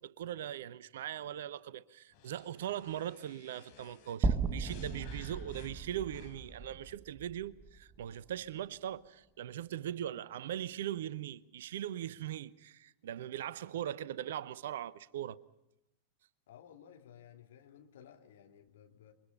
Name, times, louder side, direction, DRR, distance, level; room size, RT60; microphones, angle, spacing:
voice 1, 0.0-15.4, right 11 dB, 60° right, 0.8 m, -40 dB
sound 1, 2.1-6.7, left 8 dB, 45° left, 4.2 m, -59 dB
sound 2, 4.2-8.5, right 4 dB, 25° right, 1.4 m, -36 dB
voice 2, 16.5-19.1, left 9 dB, 60° left, 3.0 m, -56 dB
28.5 x 23.5 x 5.5 m
figure-of-eight pair, 90°, 0 cm